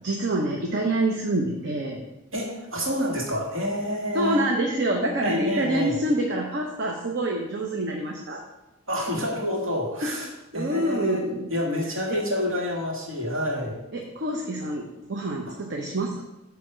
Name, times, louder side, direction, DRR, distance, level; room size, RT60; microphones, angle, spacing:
voice 1, 0.0-2.0 4.1-8.4 10.0-10.2 10.5-11.5 12.1-12.2 13.9-16.2, right 1 dB, 60° right, 0 dB, 0.9 m, -26 dB
voice 2, 2.3-4.4 5.2-6.0 8.9-13.8 15.5-15.6, equal, 90° right, -2 dB, 2.4 m, -28 dB
9.3 x 3.5 x 6.2 m, 0.97 s
head